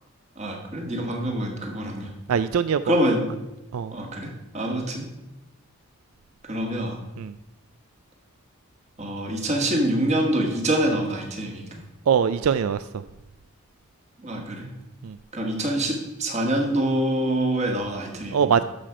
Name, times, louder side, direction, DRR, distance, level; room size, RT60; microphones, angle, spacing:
voice 1, 0.4-2.1 2.8-3.2 3.9-4.3 4.5-5.0 6.5-7.0 9.0-11.6 14.2-14.7 15.3-18.5, right 1 dB, 30° right, 1 dB, 1.7 m, -25 dB
voice 2, 2.3-3.0 3.7-3.9 7.2-7.3 12.1-12.8 15.0-15.1 18.3-18.6, right 7 dB, 75° right, 13 dB, 0.4 m, -22 dB
13.0 x 6.0 x 4.9 m, 1.0 s
head